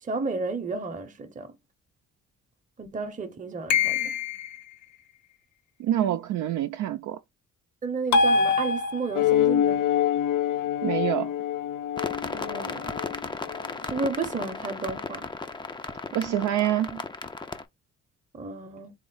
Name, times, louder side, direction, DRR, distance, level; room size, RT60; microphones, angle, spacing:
voice 1, 0.0-1.6 2.8-4.2 7.8-9.8 12.3-12.9 13.8-15.3 18.3-18.9, right 4 dB, 25° right, 0.8 m, -32 dB
sound 1, 3.7-4.6 8.1-9.3, left 3 dB, 70° left, 0.9 m, -23 dB
voice 2, 5.8-7.2 10.8-11.3 16.1-17.0, right 11 dB, 75° right, 0.5 m, -26 dB
sound 2, 9.1-14.1, left 11 dB, 85° left, 0.5 m, -26 dB
sound 3, 12.0-17.6, left 3 dB, 15° left, 0.5 m, -35 dB
4.4 x 2.0 x 3.9 m
cardioid pair, 90°, 30 cm